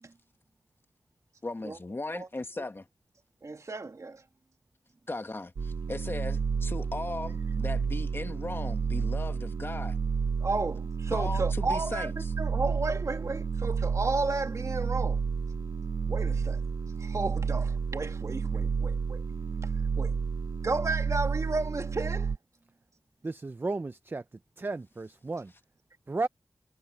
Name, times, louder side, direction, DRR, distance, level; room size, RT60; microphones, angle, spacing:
voice 1, 1.4-2.9 5.1-10.0 11.1-12.3, left 2 dB, 35° left, 1.5 m, -37 dB
voice 2, 3.4-4.2 10.4-12.1 12.4-15.2 16.1-16.6 17.0-19.2 20.0-20.2 20.6-22.3, right 3 dB, 50° right, 2.2 m, -33 dB
sound 1, 5.6-22.4, right 5 dB, 75° right, 0.6 m, -31 dB
voice 3, 23.2-24.2 24.6-25.5 26.1-26.3, right 3 dB, 30° right, 0.5 m, -33 dB
wide cardioid pair, 85°, 7 cm